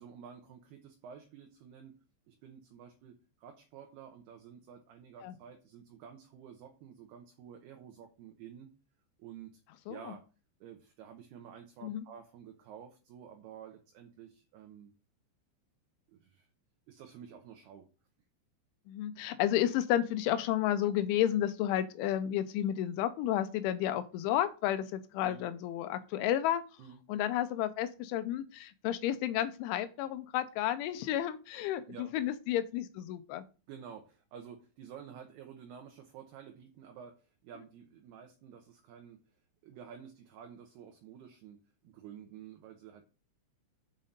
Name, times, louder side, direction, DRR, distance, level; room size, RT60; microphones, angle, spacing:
voice 1, 0.0-1.9 2.3-8.7 9.2-9.6 9.9-10.2 10.6-14.9 16.1-16.5 16.9-17.9 25.2-25.4 26.8-27.0 31.9-32.1 33.7-39.2 39.6-43.1, right 8 dB, 75° right, 3 dB, 2.6 m, -51 dB
voice 2, 18.9-26.6 27.1-33.4, left 12 dB, 85° left, 11 dB, 3.2 m, -32 dB
7.3 x 5.7 x 5.2 m, 0.34 s
omnidirectional pair, 5.4 m